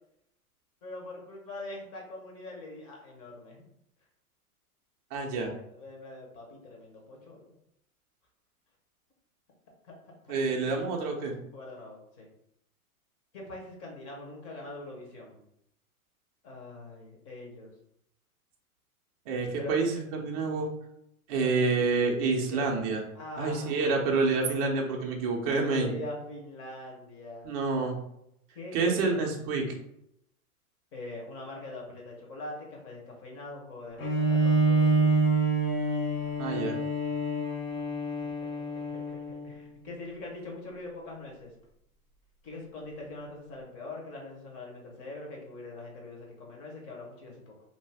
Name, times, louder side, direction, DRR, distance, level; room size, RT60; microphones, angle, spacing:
voice 1, 0.8-3.6 5.2-7.5 10.1-10.3 10.6-10.7 11.5-12.3 13.3-15.4 16.4-17.7 19.6-19.8 21.3-21.7 22.5-22.6 23.1-23.9 25.6-27.5 28.5-29.3 30.9-35.3 38.9-41.5 42.4-47.5, left 2 dB, 30° left, -1 dB, 0.9 m, -43 dB
voice 2, 5.1-5.5 10.3-11.3 19.3-20.7 21.3-23.0 23.4-25.9 27.4-28.0 28.7-29.7 36.4-36.8, right 4 dB, 25° right, 0 dB, 0.4 m, -28 dB
Bowed string instrument, 34.0-39.6, right 2 dB, 60° left, 0.9 m, -27 dB
2.7 x 2.2 x 3.3 m, 0.77 s
hypercardioid pair, 115°, 45 cm